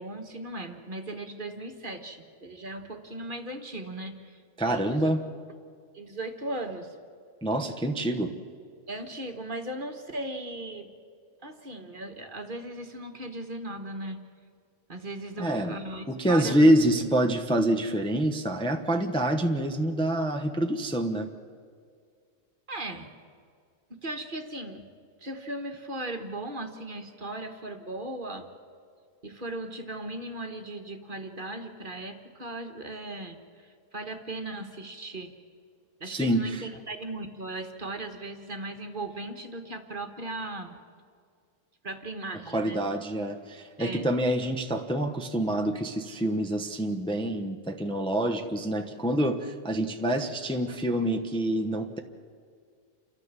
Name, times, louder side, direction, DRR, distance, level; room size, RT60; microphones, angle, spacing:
voice 1, 0.0-4.4 4.6-5.1 5.9-6.9 8.9-10.9 11.4-14.2 14.9-17.1 22.7-23.1 24.0-24.9 25.2-28.5 29.2-35.3 36.0-40.8 41.8-42.8 43.8-44.1, right 2 dB, 40° right, 5 dB, 1.6 m, -37 dB
voice 2, 4.6-5.2 7.4-8.3 15.4-15.7 16.1-21.3 36.1-36.6 42.5-52.0, right 1 dB, 5° left, 3 dB, 0.9 m, -26 dB
29.5 x 13.5 x 7.4 m, 2.2 s
omnidirectional pair, 1.4 m